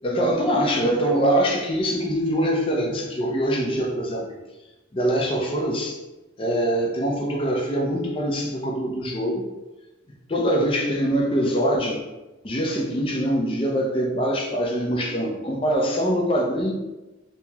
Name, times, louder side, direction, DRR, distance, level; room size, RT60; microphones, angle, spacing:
voice 1, 0.0-4.3 4.9-6.0 6.4-9.5 10.3-12.0 12.4-16.7, equal, 30° left, -1 dB, 0.5 m, -23 dB
2.9 x 2.9 x 3.5 m, 1.1 s
head